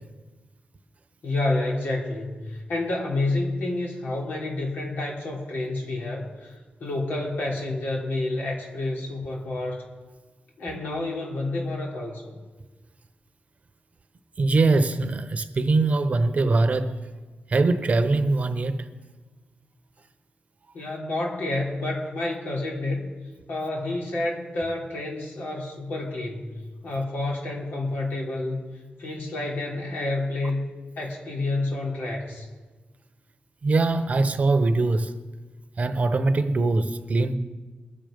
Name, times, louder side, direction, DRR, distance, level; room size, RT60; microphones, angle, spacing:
voice 1, 1.2-6.5 6.8-9.8 10.6-12.3 20.7-23.1 23.5-26.6 26.8-28.6 29.0-30.7 31.0-32.5, left 2 dB, 85° left, 3.2 m, -29 dB
voice 2, 14.4-17.0 17.5-18.8 33.6-35.1 35.8-37.4, right 3 dB, 45° right, 0.9 m, -22 dB
21.5 x 7.7 x 5.2 m
wide cardioid pair, 105°, 3 cm